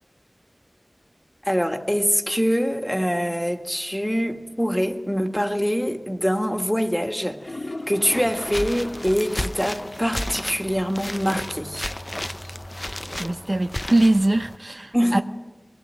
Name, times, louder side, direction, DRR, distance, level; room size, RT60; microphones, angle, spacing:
voice 1, 1.5-7.6 7.9-11.9 14.9-15.2, equal, 5° left, 1.8 m, -24 dB
sound 1, 7.4-9.6 10.0-10.1 10.5-10.6 14.4-14.5, left 2 dB, 85° left, 2.0 m, -37 dB
sound 2, 8.1-14.6, left 1 dB, 30° left, 0.6 m, -33 dB
voice 2, 13.2-15.2, right 1 dB, 55° right, 0.8 m, -22 dB
23.0 x 16.5 x 7.7 m
wide cardioid pair, 40°, 0 cm